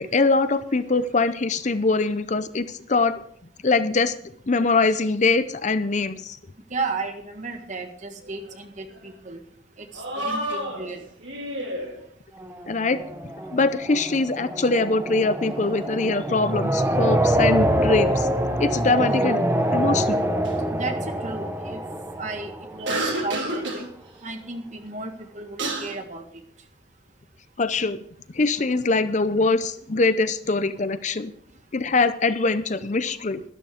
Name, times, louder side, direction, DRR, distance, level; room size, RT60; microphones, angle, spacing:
voice 1, 0.0-3.2 3.6-4.1 4.5-6.4 12.7-13.0 13.5-18.3 18.6-19.4 19.7-20.2 27.6-28.0 28.3-31.3 31.7-33.4, left 3 dB, 35° left, 12 dB, 0.6 m, -23 dB
voice 2, 6.7-9.4 9.8-11.0 20.7-21.8 22.2-23.9 24.2-26.2, right 3 dB, 35° right, 5 dB, 1.8 m, -34 dB
sound 1, 8.2-8.6 8.9-9.0 9.9-12.0 15.4-17.1 17.5-18.3 20.1-20.5 22.8-23.9 25.2-25.3 25.6-25.9, right 1 dB, 70° right, 4.0 m, -31 dB
sound 2, 12.4-23.2, right 1 dB, 10° right, 0.9 m, -25 dB
12.5 x 12.0 x 5.0 m, 0.66 s
head